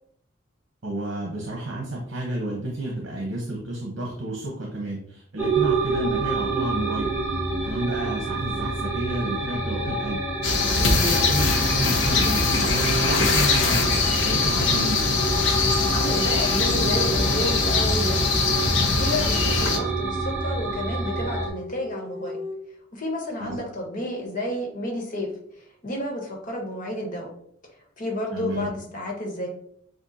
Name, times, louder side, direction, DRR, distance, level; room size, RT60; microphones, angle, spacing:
voice 1, 0.8-7.1 7.6-10.2 10.8-13.9 14.2-15.0 23.4-23.6 28.3-28.7, right 1 dB, 65° right, -1 dB, 0.9 m, -30 dB
sound 1, 5.4-21.5, right 2 dB, 10° right, 1.0 m, -28 dB
sound 2, 10.4-19.8, left 4 dB, 65° left, 0.8 m, -22 dB
sound 3, 15.1-19.1 20.4-22.6, left 3 dB, 30° right, 1.3 m, -38 dB
voice 2, 15.9-18.4 18.6-22.4 22.9-27.3 28.0-29.5, left 1 dB, 45° left, -1 dB, 1.5 m, -31 dB
7.6 x 2.5 x 2.8 m, 0.66 s
head